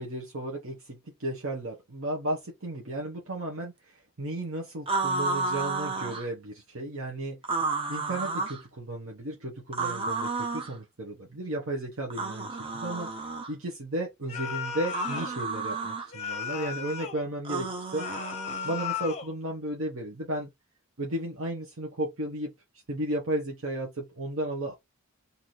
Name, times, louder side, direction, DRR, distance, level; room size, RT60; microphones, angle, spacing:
voice 1, 0.0-7.4 7.9-18.1 18.6-20.5 21.0-22.5 22.9-24.7, right 1 dB, 65° right, 0.9 m, -34 dB
sound 1, 4.9-6.3 7.4-8.6 9.7-10.7 12.1-13.5 14.8-16.1 17.4-18.8, right 3 dB, 25° right, 0.7 m, -31 dB
sound 2, 14.3-15.4 16.1-17.2 18.0-19.3, left 7 dB, 30° left, 0.7 m, -35 dB
3.1 x 2.7 x 4.0 m
head